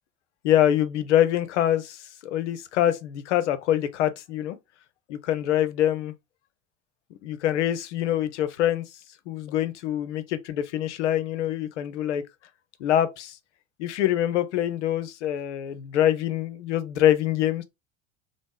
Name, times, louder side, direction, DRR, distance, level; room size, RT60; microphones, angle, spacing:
voice 1, 0.4-4.6 5.1-6.1 7.2-8.8 9.3-12.2 12.8-13.4 13.8-17.6, left 11 dB, 65° left, 0.6 m, -25 dB
3.0 x 2.0 x 3.4 m
figure-of-eight pair, 70°, 38 cm